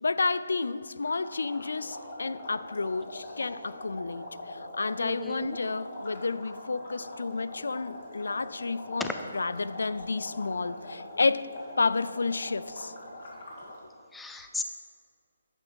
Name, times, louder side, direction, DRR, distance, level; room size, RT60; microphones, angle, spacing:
voice 1, 0.0-11.5 11.8-12.9, left 3 dB, 85° left, 0.3 m, -31 dB
sound 1, 1.0-13.8, left 1 dB, 45° left, 1.9 m, -43 dB
voice 2, 5.0-5.6 9.0-9.1 14.1-14.6, left 3 dB, 5° left, 0.4 m, -36 dB
10.5 x 5.9 x 5.3 m
hypercardioid pair, 170°, 0 cm